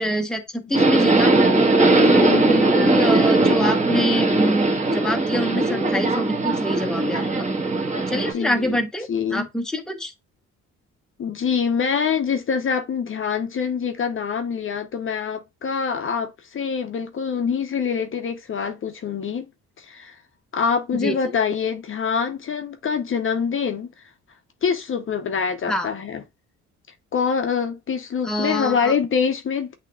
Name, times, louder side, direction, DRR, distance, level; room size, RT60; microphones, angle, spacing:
voice 1, 0.0-1.3 2.1-7.5 8.1-10.1 21.0-21.3 25.7-25.9 28.2-28.9, equal, ahead, 0.8 m, -26 dB
Subway metro underground, 0.7-8.3, right 2 dB, 25° right, 1.3 m, -19 dB
voice 2, 1.9-2.7 8.3-8.8 9.1-9.5 11.2-19.5 19.8-20.2 20.5-23.9 24.6-26.2 27.1-29.7, left 6 dB, 45° left, 0.7 m, -25 dB
8.2 x 2.9 x 2.2 m
cardioid pair, 90°, 30 cm